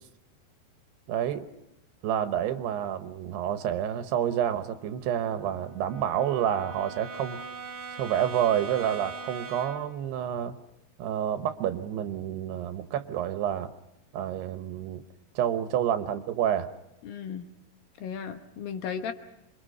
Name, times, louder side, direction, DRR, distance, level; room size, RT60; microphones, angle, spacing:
voice 1, 1.1-1.5 2.0-7.4 7.9-10.6 11.0-13.7 14.1-15.0 15.4-16.7, right 10 dB, 75° right, 10 dB, 3.0 m, -29 dB
Brass instrument, 4.4-10.0, right 4 dB, 35° right, 1.8 m, -42 dB
voice 2, 17.0-17.4 18.0-19.1, left 7 dB, 70° left, 7 dB, 2.6 m, -35 dB
27.0 x 23.5 x 5.5 m, 0.91 s
omnidirectional pair, 4.9 m